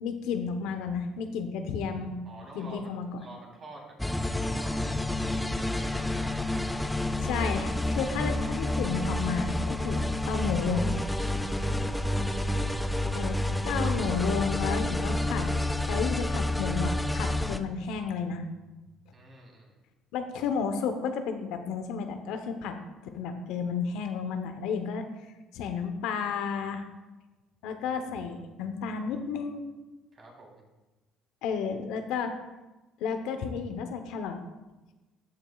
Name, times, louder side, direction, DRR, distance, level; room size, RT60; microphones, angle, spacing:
voice 1, 0.0-2.2 2.5-3.1 7.2-11.0 13.1-18.4 20.1-22.8 23.1-25.0 25.5-26.8 27.6-29.7 31.4-32.3 33.0-34.3, left 6 dB, 75° left, 7 dB, 0.9 m, -32 dB
voice 2, 2.2-6.5 11.5-12.3 19.1-19.8 30.1-30.6, right 2 dB, 40° right, -1 dB, 3.4 m, -49 dB
sound 1, 4.0-17.6, left 1 dB, 5° left, 0.6 m, -29 dB
13.5 x 8.9 x 2.4 m, 1.1 s
supercardioid pair, 80°, 0 cm